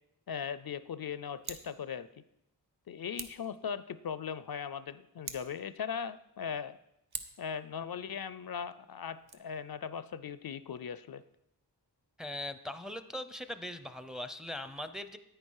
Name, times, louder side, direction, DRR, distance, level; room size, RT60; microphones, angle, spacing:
voice 1, 0.3-2.1 2.9-6.8 7.4-11.2, left 7 dB, 65° left, 15 dB, 0.5 m, -39 dB
Scissors, 1.3-1.7 3.1-3.5 5.2-5.6 7.1-7.5 9.1-9.3, right 5 dB, 70° right, 0.9 m, -43 dB
voice 2, 12.2-15.2, left 1 dB, ahead, 10 dB, 0.6 m, -40 dB
9.9 x 9.1 x 4.7 m, 0.83 s
wide cardioid pair, 65°, 40 cm